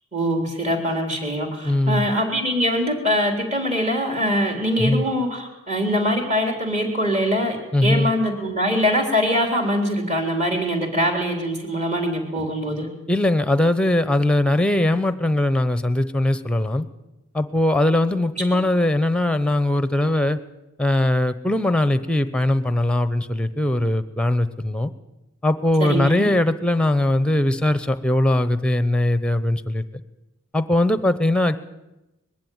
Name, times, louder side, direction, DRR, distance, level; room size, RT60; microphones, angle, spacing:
voice 1, 0.1-12.9 25.8-26.3, equal, 30° right, 3 dB, 3.7 m, -23 dB
voice 2, 1.6-2.1 4.8-5.0 7.7-8.1 13.1-16.9 17.3-20.4 20.8-24.9 25.4-29.8 30.5-31.6, left 1 dB, 5° left, 12 dB, 0.8 m, -20 dB
20.5 x 15.5 x 9.4 m, 0.99 s
head